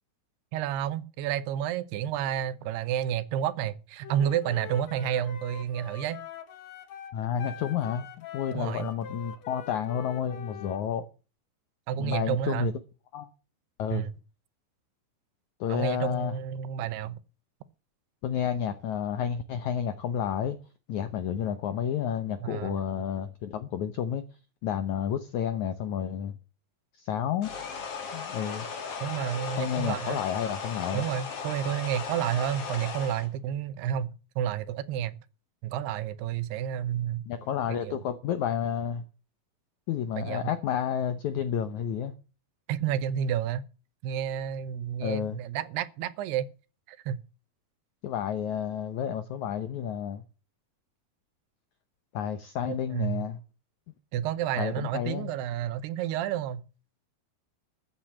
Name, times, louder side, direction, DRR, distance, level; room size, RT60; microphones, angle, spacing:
voice 1, 0.5-6.2 8.5-8.9 11.9-12.7 13.9-14.1 15.7-17.2 22.4-23.0 29.0-30.2 30.9-35.2 35.6-37.2 37.7-38.0 40.1-40.5 42.7-43.6 44.0-46.5 46.9-47.2 52.7-53.3 54.1-56.7, right 10 dB, 80° right, 2.9 m, -30 dB
Wind instrument woodwind instrument, 4.0-10.8, left 9 dB, 60° left, 1.9 m, -44 dB
voice 2, 7.1-11.0 12.0-12.7 13.1-13.3 13.8-14.1 15.6-16.3 18.2-20.6 20.9-24.2 24.6-26.4 27.0-27.5 28.1-28.7 29.6-31.0 37.3-39.0 39.9-42.1 45.0-45.4 48.0-50.2 52.1-53.4 54.6-55.3, left 8 dB, 80° left, 1.7 m, -30 dB
sound 1, 27.4-33.3, left 6 dB, 45° left, 2.5 m, -37 dB
13.5 x 8.2 x 7.3 m
omnidirectional pair, 4.7 m